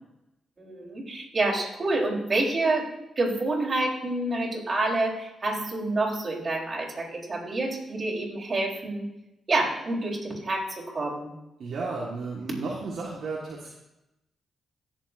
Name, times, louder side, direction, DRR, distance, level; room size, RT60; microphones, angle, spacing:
voice 1, 0.6-2.9 3.2-9.1 9.5-11.3, right 2 dB, 45° right, -3 dB, 4.0 m, -28 dB
voice 2, 11.6-13.7, right 3 dB, 65° right, -4 dB, 1.7 m, -33 dB
17.0 x 7.3 x 2.7 m, 0.91 s
supercardioid pair, 50°, 0 cm